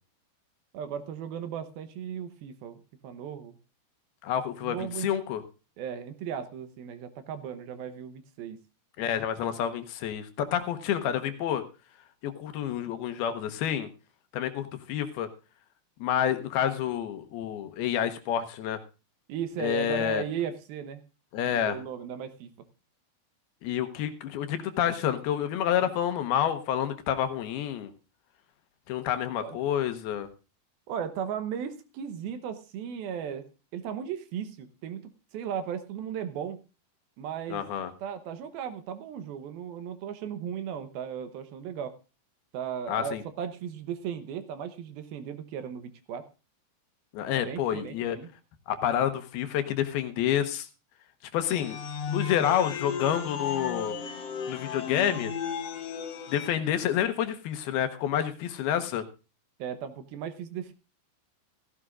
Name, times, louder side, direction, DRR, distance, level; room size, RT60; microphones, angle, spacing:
voice 1, 0.7-3.6 4.6-5.2 5.8-8.6 19.3-21.0 21.5-22.5 29.4-29.6 30.9-33.4 33.7-36.6 37.2-37.6 38.0-42.0 42.5-46.3 47.3-48.3 59.6-60.7, right 8 dB, 75° right, 9 dB, 2.6 m, -36 dB
voice 2, 4.2-5.4 9.0-11.6 12.2-13.9 14.3-15.3 16.0-18.8 19.6-20.2 21.3-21.8 23.6-27.9 28.9-30.3 37.5-37.9 42.9-43.2 47.1-48.2 48.7-50.7 51.3-51.8 52.1-54.0 54.5-55.3 56.3-59.0, left 10 dB, 75° left, 9 dB, 2.8 m, -28 dB
sound 1, 51.5-56.5, left 6 dB, 55° left, 1.9 m, -35 dB
16.0 x 15.0 x 2.5 m, 0.31 s
omnidirectional pair, 4.7 m